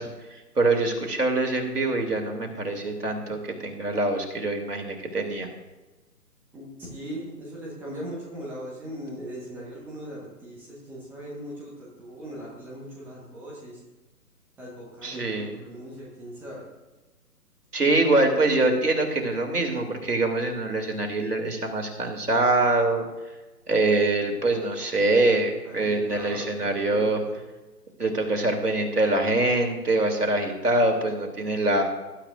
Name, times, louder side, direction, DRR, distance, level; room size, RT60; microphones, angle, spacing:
voice 1, 0.0-5.5 15.0-15.6 17.7-23.0 23.7-27.2 28.0-31.8, right 2 dB, 70° right, 3 dB, 2.9 m, -24 dB
voice 2, 6.5-13.8 14.6-16.6 25.6-27.4, equal, 5° right, -4 dB, 1.4 m, -39 dB
19.5 x 11.5 x 2.6 m, 1.1 s
figure-of-eight pair, 140°, 47 cm